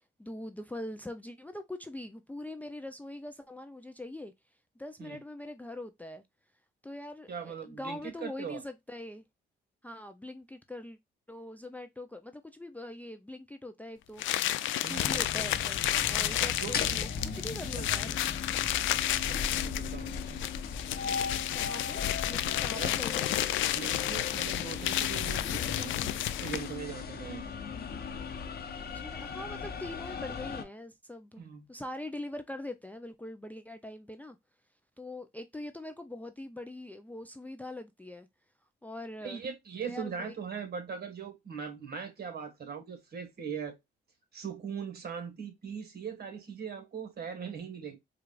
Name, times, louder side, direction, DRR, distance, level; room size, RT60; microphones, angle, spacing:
voice 1, 0.0-4.3 4.8-6.2 6.8-9.2 9.8-11.0 11.3-14.2 14.8-18.2 21.5-23.3 28.9-31.4 31.7-34.4 35.0-38.3 38.8-39.4 39.8-40.3, left 1 dB, 10° left, 0.4 m, -42 dB
voice 2, 7.3-8.6 14.8-15.2 16.6-16.7 17.3-18.0 18.6-20.2 22.7-22.9 23.3-23.4 23.7-27.4 31.4-31.7 39.2-43.8 44.3-48.0, right 6 dB, 55° right, 1.5 m, -40 dB
sound 1, 14.2-26.8, left 13 dB, 80° left, 0.4 m, -31 dB
sound 2, 15.1-30.6, left 5 dB, 50° left, 0.8 m, -38 dB
4.7 x 2.4 x 2.3 m
cardioid pair, 90°, 20 cm